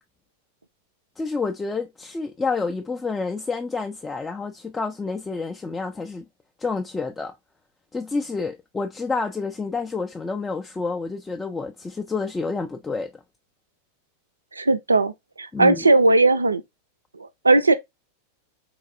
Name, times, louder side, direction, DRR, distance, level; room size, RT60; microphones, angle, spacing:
voice 1, 1.2-6.3 6.6-7.3 7.9-13.1 15.5-15.8, left 4 dB, 10° left, 0.3 m, -29 dB
voice 2, 14.5-15.1 15.4-16.6 17.2-17.7, right 2 dB, 80° right, 0.3 m, -18 dB
4.0 x 2.4 x 2.4 m
figure-of-eight pair, 90°, 0 cm